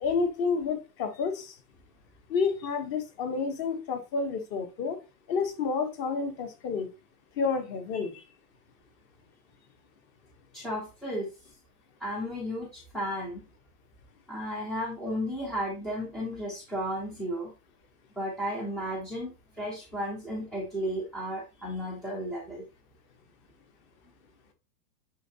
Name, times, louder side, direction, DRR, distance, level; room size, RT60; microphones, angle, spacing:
voice 1, 0.0-1.5 2.3-5.0 5.3-6.9 7.4-8.1, left 5 dB, 25° left, 0.9 m, -29 dB
voice 2, 10.5-11.3 12.0-13.4 14.3-17.5 18.2-19.3 19.6-22.6, equal, ahead, 0.5 m, -33 dB
9.1 x 3.8 x 2.7 m
supercardioid pair, 165°, 46 cm